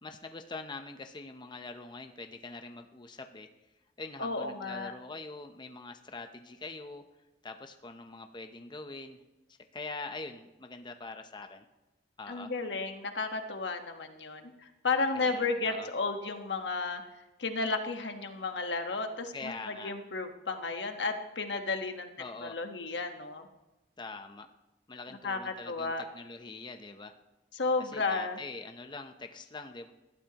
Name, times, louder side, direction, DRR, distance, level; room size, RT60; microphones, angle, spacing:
voice 1, 0.0-3.5 4.0-7.0 7.4-9.2 9.5-11.6 12.2-12.5 15.1-15.9 19.3-19.9 22.2-22.6 24.0-24.5 24.9-27.1 27.9-29.9, left 3 dB, 25° left, 6 dB, 0.7 m, -44 dB
voice 2, 4.2-4.9 12.3-17.0 17.4-22.1 22.4-23.5 25.2-26.0 27.5-28.4, left 3 dB, 80° left, 5 dB, 1.3 m, -33 dB
19.5 x 12.5 x 2.9 m, 1.0 s
head